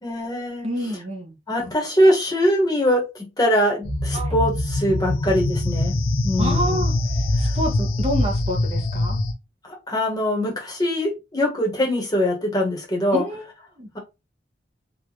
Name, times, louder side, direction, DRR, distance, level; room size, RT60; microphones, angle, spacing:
voice 1, 0.0-0.7 1.5-6.0 6.2-6.8 7.4-7.5 9.6-13.2, equal, 20° left, 1.1 m, -22 dB
voice 2, 0.6-1.3 4.1-4.3 6.4-6.9 7.4-9.2 13.1-13.4 13.8-13.9, equal, 35° right, 0.8 m, -27 dB
sound 1, 3.8-9.3, left 1 dB, 80° left, 0.9 m, -23 dB
4.0 x 2.4 x 3.0 m
head